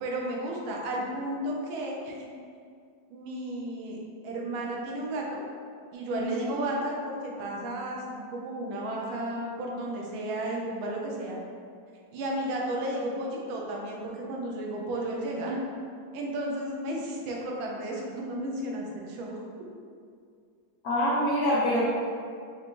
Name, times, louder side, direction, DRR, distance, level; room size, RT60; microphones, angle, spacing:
voice 1, 0.0-2.3 3.1-4.0 4.2-5.4 5.9-11.4 12.1-15.6 16.1-19.4, right 1 dB, 90° right, -1 dB, 1.5 m, -33 dB
voice 2, 20.8-21.8, equal, 70° left, -7 dB, 0.9 m, -25 dB
4.7 x 2.5 x 3.0 m, 2.3 s
omnidirectional pair, 2.1 m